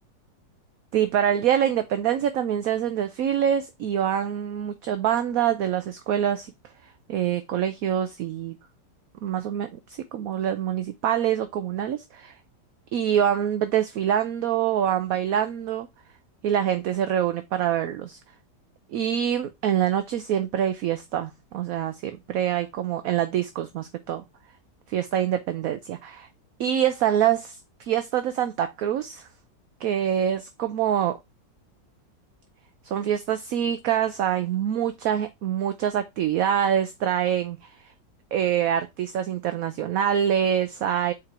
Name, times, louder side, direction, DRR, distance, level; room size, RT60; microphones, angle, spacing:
voice 1, 0.9-6.5 7.1-8.6 9.2-9.8 10.1-12.3 12.9-15.9 16.4-18.2 18.9-24.2 24.9-26.3 26.6-29.3 29.8-31.2 32.8-37.6 38.3-41.1, right 9 dB, 65° right, 0.9 m, -25 dB
4.9 x 4.4 x 4.6 m
omnidirectional pair, 1.9 m